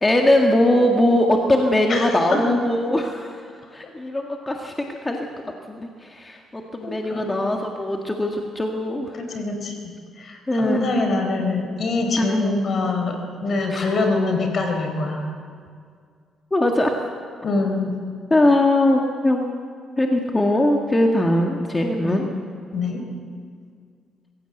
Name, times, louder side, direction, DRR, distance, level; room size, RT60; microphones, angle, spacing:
voice 1, 0.0-3.4 3.7-5.3 5.7-9.1 10.5-10.9 12.2-12.5 13.7-13.8 16.5-17.0 18.3-19.6 20.0-22.3, left 1 dB, 20° left, 2 dB, 1.8 m, -21 dB
voice 2, 1.9-2.5 3.8-3.9 6.8-7.3 9.1-15.2 17.4-18.0 22.0-22.3 22.7-23.0, left 3 dB, 55° left, 4 dB, 4.5 m, -25 dB
24.0 x 16.0 x 8.0 m, 2.1 s
cardioid pair, 90°, 0 cm